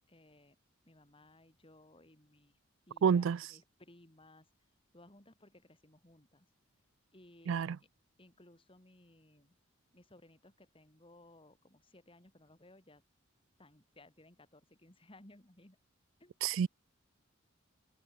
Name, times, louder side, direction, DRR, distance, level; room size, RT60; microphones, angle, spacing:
voice 1, 0.1-0.6 0.8-2.6 2.9-4.5 4.9-6.5 7.1-7.7 8.2-9.5 9.9-13.0 13.6-15.8 16.2-16.4, left 1 dB, 25° left, 3.3 m, -60 dB
voice 2, 3.0-3.4 7.5-7.8 16.4-16.7, right 7 dB, 70° right, 0.4 m, -28 dB
head